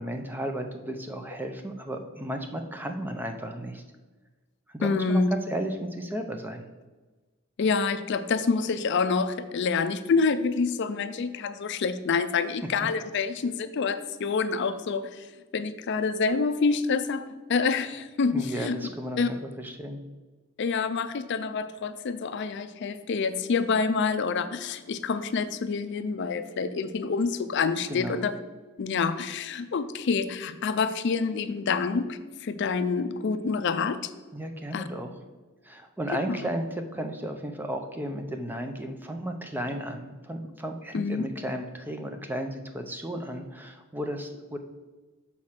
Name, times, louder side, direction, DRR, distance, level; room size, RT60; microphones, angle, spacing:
voice 1, 0.0-3.8 4.7-6.6 18.3-20.0 27.9-28.3 34.3-35.1 35.6-44.6, right 1 dB, 10° right, 5 dB, 0.5 m, -34 dB
voice 2, 4.8-5.3 7.6-15.3 15.5-18.8 19.2-19.3 20.6-28.4 28.8-34.1 34.7-34.8 40.9-41.3, left 5 dB, 55° left, 10 dB, 0.4 m, -27 dB
6.3 x 4.2 x 5.8 m, 1.3 s
head